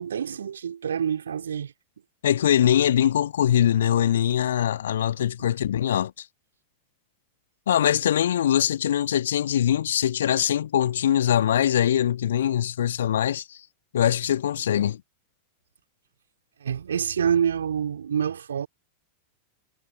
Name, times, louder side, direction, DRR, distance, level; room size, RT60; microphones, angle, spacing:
voice 1, 0.0-1.7 16.6-18.7, right 8 dB, 65° right, 3.0 m, -27 dB
voice 2, 2.2-6.2 7.7-13.6 13.9-15.0, left 10 dB, 60° left, 1.8 m, -22 dB
figure-of-eight pair, 90°, 0 cm